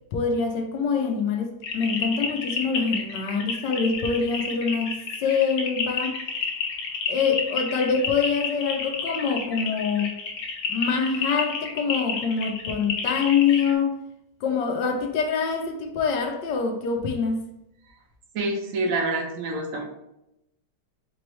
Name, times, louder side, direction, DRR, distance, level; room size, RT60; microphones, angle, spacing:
voice 1, 0.1-4.9 5.2-6.2 7.1-10.1 10.7-14.0 14.4-17.4, left 5 dB, 85° left, 1.3 m, -25 dB
sound 1, 1.6-13.7, left 5 dB, 65° left, 1.2 m, -30 dB
voice 2, 18.3-19.8, right 2 dB, 60° right, 1.0 m, -27 dB
4.3 x 3.1 x 3.1 m
omnidirectional pair, 1.9 m